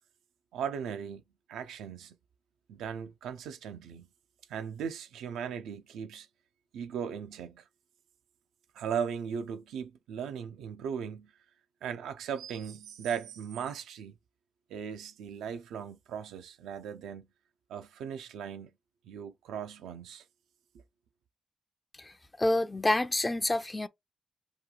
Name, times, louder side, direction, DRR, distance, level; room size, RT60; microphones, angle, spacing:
voice 1, 0.5-1.2 1.5-2.2 2.7-4.1 4.5-6.3 6.7-7.6 8.7-11.3 11.8-14.2 14.7-17.3 17.7-18.7 19.0-20.2, right 7 dB, 85° right, 0.4 m, -38 dB
voice 2, 22.0-23.9, left 2 dB, 25° left, 0.5 m, -28 dB
3.0 x 2.3 x 3.8 m
supercardioid pair, 50°, 0 cm